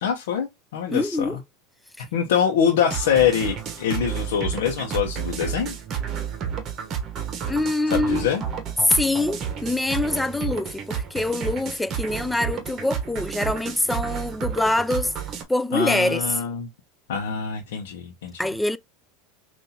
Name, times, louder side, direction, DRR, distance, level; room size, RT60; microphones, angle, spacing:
voice 1, 0.0-1.3 2.1-5.8 7.9-8.4 15.7-16.7 17.1-18.3, left 8 dB, 85° left, 0.8 m, -24 dB
voice 2, 0.9-1.4 7.5-8.3 8.8-15.1 15.5-16.4 18.4-18.8, left 2 dB, 5° left, 0.3 m, -24 dB
sound 1, 2.9-15.4, right 8 dB, 40° right, 1.0 m, -31 dB
5.6 x 2.5 x 2.8 m
supercardioid pair, 120°, 0 cm